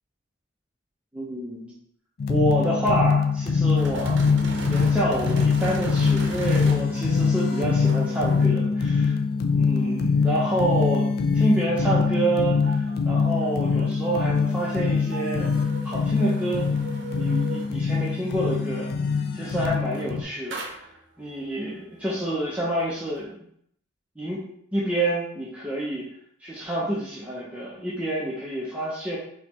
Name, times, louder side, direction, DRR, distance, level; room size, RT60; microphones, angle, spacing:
voice 1, 1.1-1.7 2.3-4.2 4.7-9.1 9.5-11.1 11.3-15.5 15.8-16.7 17.1-18.9 19.3-20.8 21.2-23.4 24.2-24.4 24.7-26.1 26.4-29.2, right 1 dB, 5° right, -7 dB, 0.6 m, -28 dB
sound 1, 2.2-20.2, left 5 dB, 55° left, 0.3 m, -23 dB
sound 2, 3.8-8.6 12.7-14.0 15.1-17.8 19.9-20.1 20.5-21.0, right 2 dB, 70° right, 0.7 m, -37 dB
3.7 x 3.0 x 3.1 m, 0.68 s
head